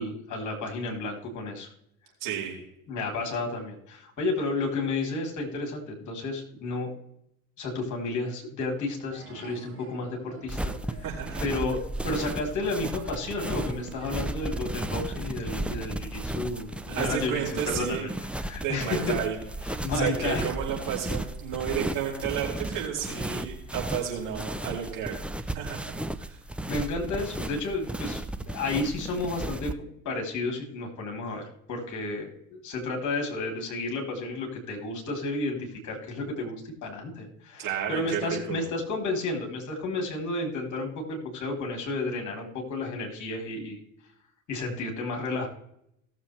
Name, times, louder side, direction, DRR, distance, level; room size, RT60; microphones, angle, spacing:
voice 1, 0.0-1.7 2.9-6.9 7.6-10.7 11.4-18.1 18.4-19.2 19.8-20.4 26.7-43.8 44.5-45.5, left 2 dB, 45° left, 1 dB, 3.9 m, -32 dB
voice 2, 2.2-2.6 11.0-11.4 16.9-18.1 18.6-19.4 19.9-25.2 25.5-25.9 26.2-26.4 37.6-38.6, right 9 dB, 50° right, -3 dB, 5.3 m, -32 dB
sound 1, 9.1-14.7, right 5 dB, 30° right, 5.3 m, -48 dB
sound 2, 10.5-29.7, right 1 dB, 5° right, 0.7 m, -34 dB
18.5 x 7.4 x 3.3 m, 0.75 s
figure-of-eight pair, 70°, 42 cm